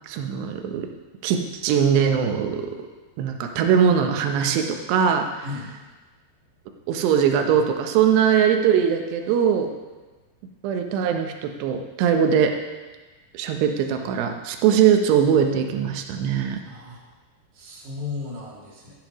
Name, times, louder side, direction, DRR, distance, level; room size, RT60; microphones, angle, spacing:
voice 1, 0.1-0.9 1.2-2.7 3.2-5.4 6.9-9.7 10.6-12.6 13.3-16.6, right 8 dB, 75° right, 5 dB, 2.8 m, -21 dB
voice 2, 16.6-17.0 17.5-18.9, left 4 dB, 45° right, -6 dB, 3.4 m, -35 dB
15.5 x 9.2 x 3.0 m, 1.3 s
omnidirectional pair, 5.3 m